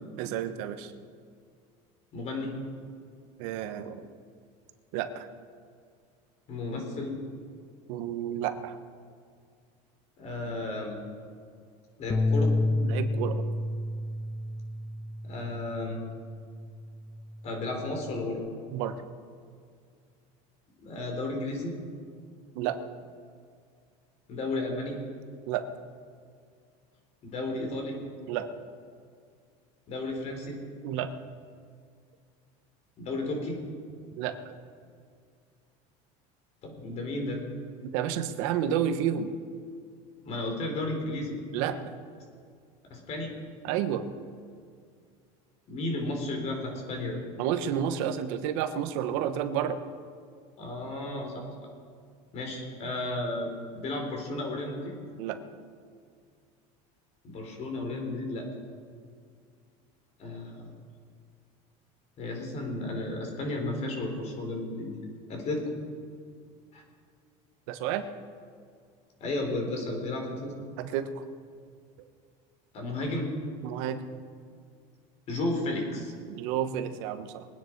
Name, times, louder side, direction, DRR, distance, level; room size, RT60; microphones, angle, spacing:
voice 1, 0.2-0.9 3.4-4.1 4.9-5.3 7.9-8.8 12.8-13.4 18.7-19.0 22.5-22.8 25.5-25.6 28.3-28.5 30.8-31.1 34.1-34.3 37.9-39.3 41.5-41.9 43.6-44.1 47.4-49.8 55.2-55.4 67.7-68.0 70.8-71.2 73.6-74.0 76.3-77.5, right 9 dB, 75° right, 9 dB, 1.1 m, -30 dB
voice 2, 2.1-2.5 6.5-7.2 10.2-11.0 12.0-12.6 15.2-16.0 17.4-18.4 20.8-21.7 24.3-25.0 27.2-28.0 29.9-30.6 33.0-33.6 36.6-37.4 40.2-41.4 42.9-43.4 45.7-47.2 50.6-51.5 52.3-54.9 57.2-58.5 60.2-60.7 62.2-64.9 65.3-65.8 66.7-66.8 69.2-70.5 72.7-73.3 75.3-76.1, left 2 dB, 45° left, 2 dB, 4.1 m, -33 dB
sound 1, 12.1-18.3, left 2 dB, 15° left, 0.6 m, -31 dB
22.5 x 9.6 x 4.7 m, 2.2 s
cardioid pair, 140°, 16 cm